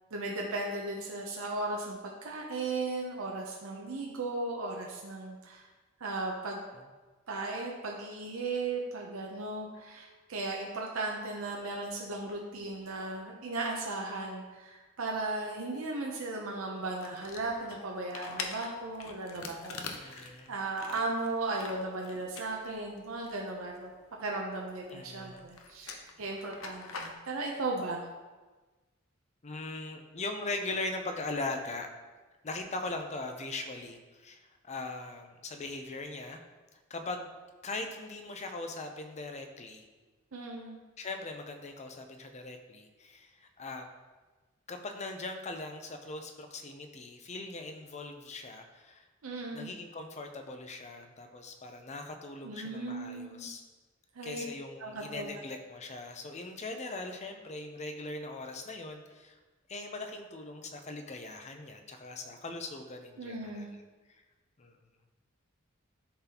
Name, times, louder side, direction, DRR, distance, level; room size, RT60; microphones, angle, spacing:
voice 1, 0.1-5.7 6.0-6.6 7.3-23.9 24.2-28.1 40.3-40.8 49.2-49.8 52.4-53.5 54.1-54.4 54.8-55.3 63.2-63.7, right 2 dB, 90° right, -1 dB, 0.7 m, -36 dB
sound 1, 16.8-24.5 24.8-27.2, left 4 dB, 85° left, 0.7 m, -44 dB
voice 2, 20.0-20.5 24.9-25.5 29.4-31.9 32.4-36.4 36.7-37.3 37.6-39.9 41.0-43.9 44.7-49.0 49.5-53.6 54.2-59.4 59.7-63.8 64.6-64.7, left 2 dB, 35° left, 5 dB, 0.6 m, -40 dB
10.0 x 4.0 x 2.9 m, 1.3 s
head